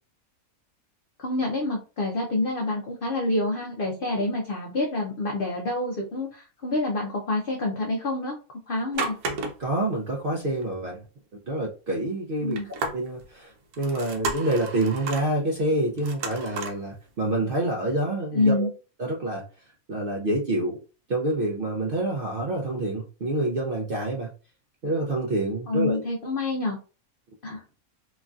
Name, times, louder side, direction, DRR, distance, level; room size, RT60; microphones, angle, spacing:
voice 1, 1.2-8.4 8.7-9.1 12.4-12.7 18.3-18.7 25.7-26.8 27.4-27.6, left 2 dB, 65° left, -1 dB, 0.5 m, -27 dB
sound 1, 8.9-9.8 10.1-10.2 10.6-10.7 12.5-13.3 13.7-15.3 16.0-16.8 17.3-17.4, right 3 dB, 85° right, 1.2 m, -32 dB
voice 2, 9.6-11.0 11.4-12.6 12.9-18.7 19.0-19.5 19.9-20.8 21.1-24.3 24.8-26.0, right 1 dB, 65° right, -1 dB, 0.5 m, -27 dB
3.1 x 2.5 x 2.3 m, 0.34 s
omnidirectional pair, 1.6 m